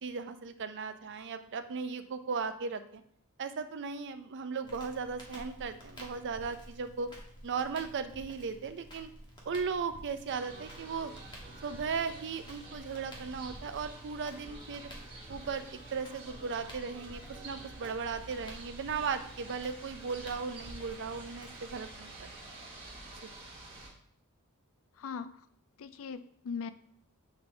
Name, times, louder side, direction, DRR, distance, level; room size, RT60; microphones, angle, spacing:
voice 1, 0.0-3.0 3.4-7.1 7.4-9.1 9.5-11.1 11.6-14.9 15.3-22.3 23.2-23.3, right 5 dB, 55° right, 10 dB, 0.5 m, -37 dB
Crackle, 4.6-21.8, equal, 20° left, 1.2 m, -52 dB
sound 1, 10.3-23.9, right 2 dB, 30° right, 2.1 m, -49 dB
voice 2, 24.9-25.5 25.8-26.7, left 6 dB, 65° left, 13 dB, 0.4 m, -40 dB
6.8 x 4.4 x 3.2 m, 0.66 s
head